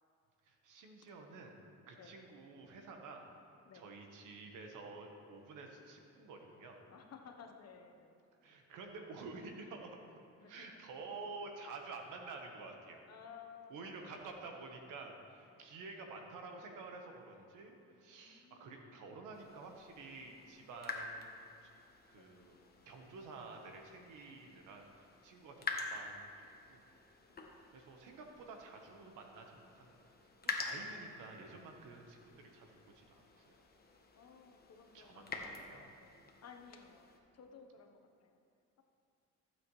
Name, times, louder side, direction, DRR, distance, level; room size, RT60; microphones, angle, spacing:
voice 1, 0.4-1.6 1.9-3.2 3.7-6.8 8.4-10.2 10.5-13.0 13.7-21.3 21.6-21.7 22.1-22.6 22.8-26.8 27.7-30.1 30.4-33.6 34.9-35.8, right 3 dB, 90° right, 3 dB, 1.3 m, -50 dB
voice 2, 6.9-8.2 10.3-10.7 13.1-14.2 15.4-15.7 18.1-19.1 22.1-22.3 27.3-27.6 30.8-31.7 34.1-37.1 37.3-38.4, left 6 dB, 55° left, 4 dB, 1.2 m, -57 dB
sound 1, 19.3-37.2, left 3 dB, 30° left, 1.2 m, -48 dB
15.0 x 8.0 x 3.2 m, 2.5 s
cardioid pair, 90°, 30 cm